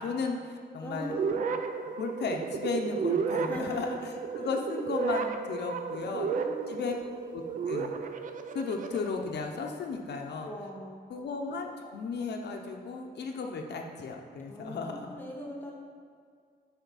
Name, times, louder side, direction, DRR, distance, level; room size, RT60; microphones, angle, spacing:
voice 1, 0.0-1.1 1.8-4.0 4.4-6.3 6.7-6.9 7.3-7.9 8.5-10.5 11.1-15.2, left 4 dB, 75° left, 2 dB, 0.7 m, -35 dB
voice 2, 0.8-1.4 3.4-4.0 4.4-4.5 6.0-6.9 10.4-11.1 14.4-15.7, left 1 dB, 10° left, -2 dB, 1.0 m, -40 dB
sound 1, 1.1-9.1, right 5 dB, 50° right, 0.4 m, -33 dB
8.0 x 5.1 x 4.0 m, 2.1 s
wide cardioid pair, 175°, 18 cm